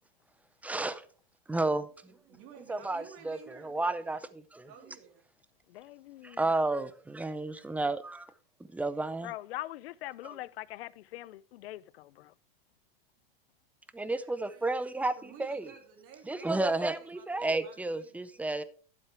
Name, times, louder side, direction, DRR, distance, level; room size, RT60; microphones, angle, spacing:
voice 1, 0.6-1.0 1.5-2.1 2.7-4.7 6.2-8.3 8.7-9.3 10.2-10.4 13.9-15.1 15.4-15.7 16.3-18.6, right 2 dB, 5° right, 0.5 m, -32 dB
voice 2, 2.0-3.9 4.2-4.3 4.7-5.3 6.8-6.9 7.2-7.7 8.0-8.2 13.9-14.8 15.2-18.3, right 8 dB, 50° right, 3.0 m, -54 dB
voice 3, 5.7-6.4 9.2-12.3, left 16 dB, 75° left, 0.6 m, -42 dB
12.0 x 7.6 x 3.5 m
hypercardioid pair, 115°, 30 cm